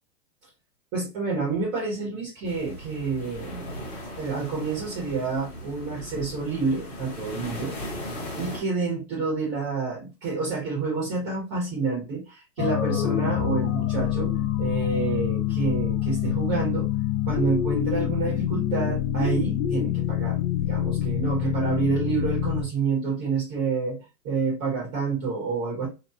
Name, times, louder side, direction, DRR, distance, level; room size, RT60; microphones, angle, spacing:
voice 1, 0.9-3.8 4.2-7.7 8.1-14.3 14.6-16.9 17.2-24.0 24.2-25.9, right 4 dB, 25° right, -4 dB, 1.4 m, -28 dB
sound 1, 2.5-8.6, equal, 20° left, 0.8 m, -38 dB
sound 2, 12.6-22.6, left 12 dB, 55° left, 0.5 m, -26 dB
2.9 x 2.4 x 2.3 m, 0.28 s
hypercardioid pair, 140°, 48 cm